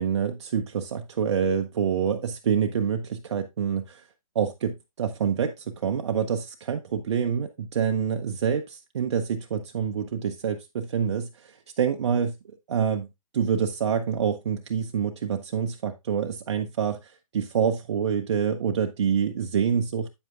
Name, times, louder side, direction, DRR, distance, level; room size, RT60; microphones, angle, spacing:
voice 1, 0.0-4.0 4.3-12.4 12.7-13.1 13.3-20.1, right 7 dB, 50° right, 0.7 m, -27 dB
8.9 x 7.7 x 2.4 m
figure-of-eight pair, 135°, 18 cm